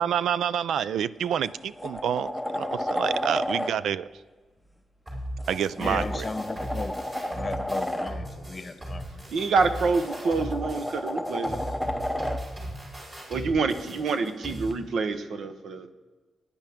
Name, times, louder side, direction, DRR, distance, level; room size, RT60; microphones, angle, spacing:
voice 1, 0.0-4.0 5.5-6.2, right 9 dB, 80° right, 17 dB, 0.4 m, -28 dB
sound 1, 0.8-1.0 1.4-3.7 5.4-8.1 9.6-12.4 14.7-14.8, left 1 dB, ahead, 0.7 m, -32 dB
sound 2, 5.1-14.7, equal, 25° right, 3.9 m, -37 dB
voice 2, 5.8-6.9 7.3-9.2, left 3 dB, 25° left, 7 dB, 1.0 m, -35 dB
voice 3, 9.3-11.7 13.3-15.9, right 4 dB, 65° right, 9 dB, 1.0 m, -27 dB
19.0 x 10.0 x 3.6 m, 1.3 s
wide cardioid pair, 165°, 0 cm